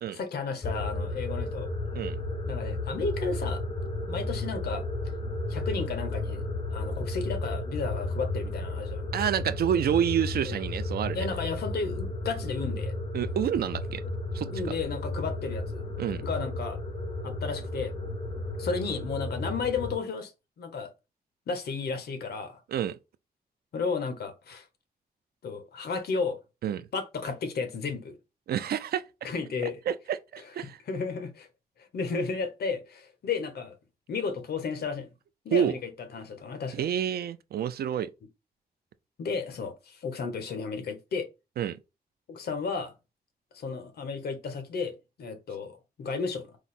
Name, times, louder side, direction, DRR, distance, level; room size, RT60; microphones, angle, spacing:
voice 1, 0.1-1.7 2.5-3.6 4.1-4.8 5.5-6.4 6.7-9.1 10.4-10.6 11.1-13.0 14.4-15.9 16.2-16.8 17.2-18.0 18.6-20.3 20.6-20.9 21.5-22.6 23.7-24.7 25.4-26.4 26.9-28.2 29.2-29.8 30.6-31.5 31.8-33.7 34.1-35.1 35.4-35.8 36.1-36.9 39.2-41.3 42.3-42.9 43.5-46.6, left 4 dB, 80° left, 0.9 m, -33 dB
sound 1, 0.6-19.9, left 2 dB, 35° left, 0.7 m, -33 dB
voice 2, 9.1-11.3 13.1-14.0 14.3-14.5 16.0-16.2 22.7-23.0 26.6-26.9 28.5-29.0 29.9-30.8 35.5-35.7 36.7-38.1 41.6-41.8, right 9 dB, 75° right, 0.4 m, -28 dB
4.7 x 2.0 x 4.1 m
wide cardioid pair, 170°, 16 cm